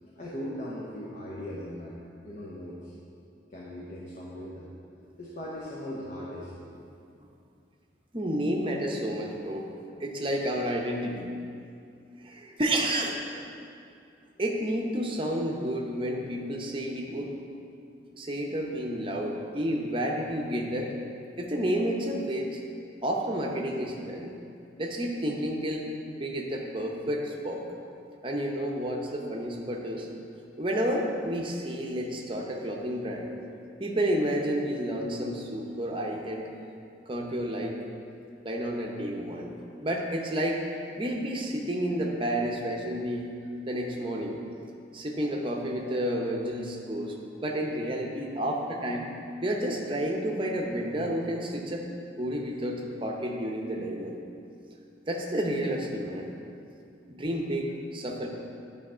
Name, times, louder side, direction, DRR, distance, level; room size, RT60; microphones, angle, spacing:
voice 1, 0.0-2.9 3.5-4.7 5.2-6.5 47.1-47.3, left 1 dB, 40° left, -6 dB, 0.9 m, -39 dB
voice 2, 8.1-9.7 10.0-11.3 12.2-13.4 14.4-17.3 18.1-20.9 21.4-22.6 23.0-24.3 24.8-25.9 26.2-27.6 28.2-30.1 30.6-33.3 33.8-36.5 37.1-37.8 38.4-39.5 39.8-40.6 41.0-43.3 43.7-44.4 44.9-47.1 47.4-49.1 49.4-51.9 52.2-54.2 55.1-56.3 57.1-58.3, equal, 30° right, 0 dB, 0.7 m, -30 dB
10.0 x 3.4 x 5.5 m, 2.5 s
head